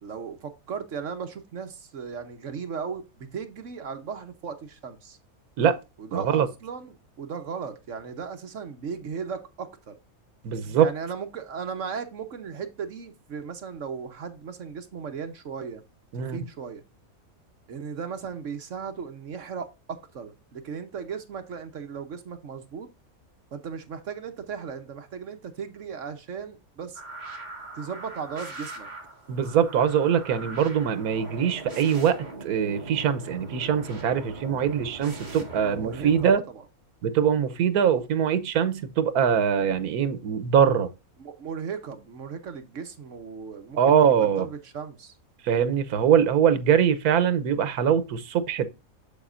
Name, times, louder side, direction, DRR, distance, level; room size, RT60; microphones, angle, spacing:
voice 1, 0.0-5.2 6.0-10.0 10.7-15.8 16.2-16.8 17.7-22.9 23.5-27.0 27.7-28.9 35.6-36.6 37.3-37.5 41.2-43.8 44.2-45.2, right 6 dB, 60° right, 1.2 m, -36 dB
voice 2, 6.1-6.5 10.4-10.9 16.1-16.4 29.3-36.4 37.0-40.9 43.8-44.5 45.4-48.7, right 8 dB, 80° right, 1.3 m, -23 dB
sound 1, 26.9-36.3, right 2 dB, 30° right, 1.6 m, -41 dB
7.2 x 7.0 x 2.5 m
omnidirectional pair, 1.5 m